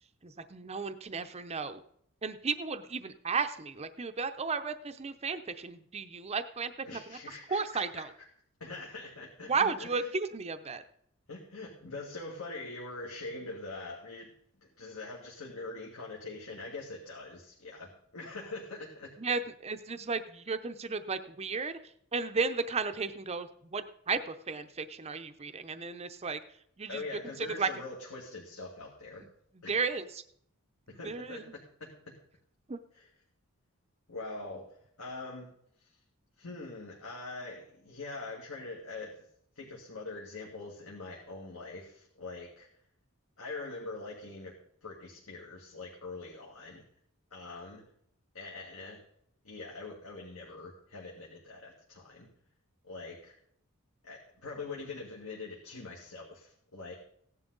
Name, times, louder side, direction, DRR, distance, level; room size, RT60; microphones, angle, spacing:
voice 1, 0.2-1.8 2.2-6.7 7.1-7.2 7.5-8.1 9.4-10.8 19.2-21.8 22.1-26.4 26.8-27.0 27.6-27.7 29.7-30.1 31.0-31.5 32.7-32.8, right 4 dB, 30° right, 9 dB, 0.6 m, -34 dB
voice 2, 6.8-8.0 8.6-10.1 11.3-14.3 14.6-19.1 26.9-29.3 29.6-29.8 30.9-31.4 31.8-31.9 32.9-33.0 34.1-34.7 35.0-35.5 35.8-36.0 36.4-39.1 39.6-42.7 43.4-44.5 44.8-46.8 47.3-47.8 48.3-49.0 49.4-52.3 52.8-53.4 54.0-56.9, left 3 dB, 70° left, -3 dB, 2.3 m, -43 dB
16.5 x 11.0 x 3.9 m, 0.68 s
head